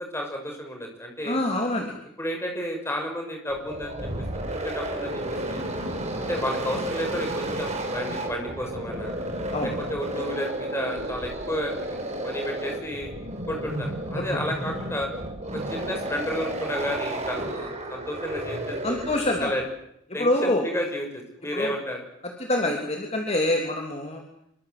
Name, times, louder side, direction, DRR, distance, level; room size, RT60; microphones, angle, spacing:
voice 1, 0.0-1.4 2.2-5.6 6.3-9.1 9.6-13.1 13.5-15.1 15.5-19.0 19.4-19.6 20.1-22.0, equal, 10° left, 2 dB, 6.1 m, -32 dB
voice 2, 1.3-2.0 9.5-9.7 14.2-14.3 18.8-19.5 20.2-20.6 21.5-21.7 22.5-24.2, left 1 dB, 30° left, 2 dB, 3.1 m, -25 dB
sound 1, 3.5-19.6, right 1 dB, 30° right, 4.8 m, -32 dB
26.0 x 23.5 x 7.9 m, 0.77 s
head